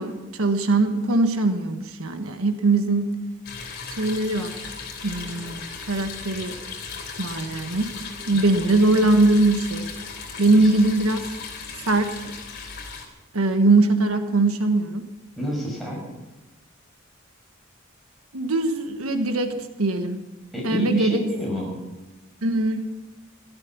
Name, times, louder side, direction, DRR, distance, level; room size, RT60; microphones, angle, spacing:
voice 1, 0.0-3.1 4.0-4.7 5.0-6.6 7.2-7.9 8.3-9.8 10.4-11.3 11.9-12.1 13.3-15.0 18.3-19.5 19.8-20.2 20.6-21.2 22.4-22.9, right 2 dB, 85° right, 6 dB, 1.4 m, -21 dB
sound 1, 3.4-13.1, left 5 dB, 50° left, 3.2 m, -37 dB
voice 2, 15.4-16.0 20.5-21.7, left 1 dB, ahead, -4 dB, 6.1 m, -28 dB
16.5 x 13.0 x 5.9 m, 1.1 s
head